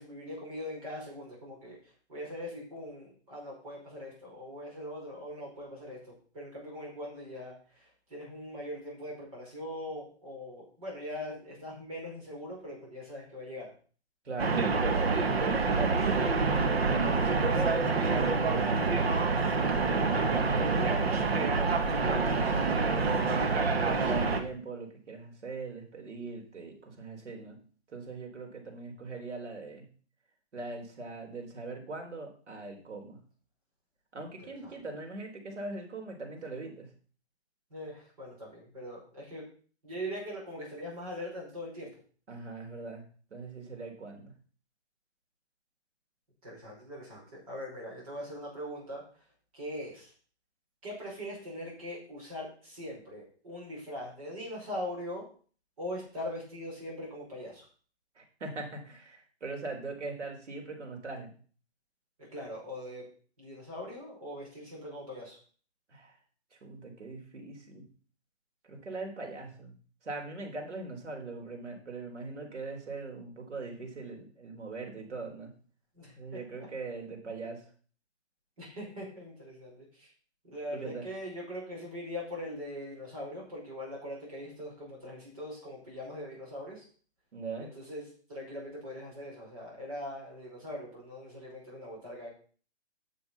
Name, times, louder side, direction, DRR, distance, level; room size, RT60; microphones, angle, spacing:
voice 1, 0.0-1.8 2.1-13.7 34.4-34.8 37.7-39.5 39.8-41.9 46.4-49.0 49.5-50.1 50.8-55.3 55.8-57.6 62.3-63.1 63.4-65.4 76.0-76.4 78.6-80.1 80.5-86.8 87.6-92.3, equal, 30° right, -3 dB, 5.2 m, -41 dB
voice 2, 14.2-14.6 15.1-17.1 17.5-18.8 19.8-21.0 21.3-23.1 23.6-27.6 27.9-29.9 30.5-33.2 34.1-36.9 42.3-43.1 43.3-44.3 58.2-61.3 65.9-66.2 66.5-67.9 68.6-69.7 70.0-75.5 76.1-77.6 80.7-81.1 87.3-87.7, right 3 dB, 85° right, 2 dB, 4.3 m, -41 dB
sound 1, 14.4-24.4, right 4 dB, 60° right, 1.8 m, -27 dB
9.7 x 7.0 x 5.6 m, 0.42 s
hypercardioid pair, 180°, 34 cm